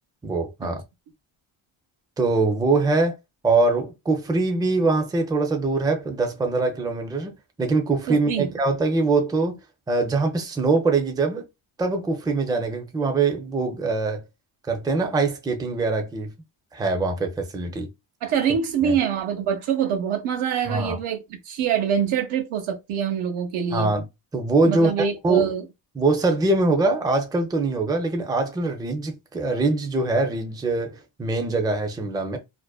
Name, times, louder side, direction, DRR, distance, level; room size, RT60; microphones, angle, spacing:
voice 1, 0.2-0.8 2.2-3.2 3.4-9.6 9.9-11.5 11.8-14.2 14.7-16.3 16.7-17.9 18.8-19.0 20.7-21.0 23.7-24.0 24.3-25.5 26.0-32.4, right 3 dB, 10° right, 0.4 m, -23 dB
voice 2, 8.1-8.5 18.2-23.9 24.6-25.6, right 8 dB, 85° right, 0.8 m, -25 dB
2.5 x 2.1 x 2.3 m
cardioid pair, 100°, 48 cm